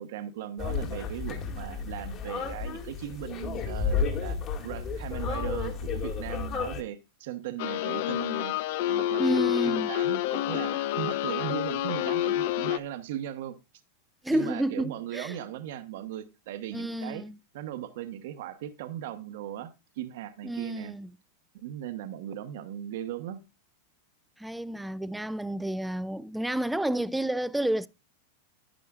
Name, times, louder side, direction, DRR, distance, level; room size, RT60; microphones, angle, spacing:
voice 1, 0.0-8.5 8.9-13.6 14.3-17.2 17.5-20.9 21.5-23.4, right 11 dB, 70° right, 1.1 m, -38 dB
sound 1, 0.6-6.8, left 5 dB, 35° left, 2.2 m, -32 dB
sound 2, 7.6-12.8, left 13 dB, 65° left, 0.6 m, -28 dB
voice 2, 9.2-9.9 14.2-15.4 16.7-17.4 20.4-21.1 24.4-27.9, right 1 dB, 5° right, 0.4 m, -30 dB
11.5 x 9.2 x 2.4 m
supercardioid pair, 140°, 0 cm